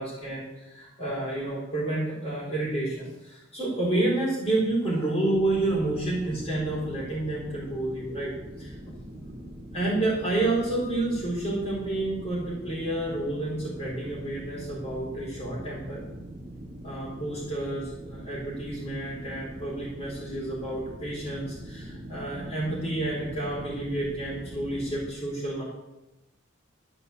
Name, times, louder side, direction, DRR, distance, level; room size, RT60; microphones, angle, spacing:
voice 1, 0.0-8.8 9.7-16.0 16.8-25.6, right 2 dB, 30° left, -9 dB, 4.5 m, -30 dB
sound 1, 5.4-25.1, right 1 dB, 15° right, 1.0 m, -42 dB
13.0 x 6.6 x 8.2 m, 0.95 s
head